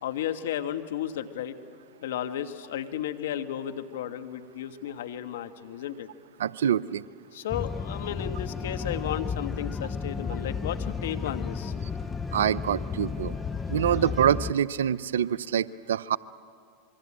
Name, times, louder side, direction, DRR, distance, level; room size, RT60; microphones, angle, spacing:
voice 1, 0.0-1.6 2.0-6.1 7.3-11.7 13.9-14.1, left 10 dB, 75° left, 9 dB, 1.5 m, -34 dB
voice 2, 6.4-7.0 12.3-13.3 13.7-16.2, right 9 dB, 80° right, 18 dB, 0.6 m, -25 dB
sound 1, 7.5-14.5, left 5 dB, 20° left, 0.8 m, -33 dB
26.5 x 23.5 x 8.7 m, 2.4 s
hypercardioid pair, 95°, 0 cm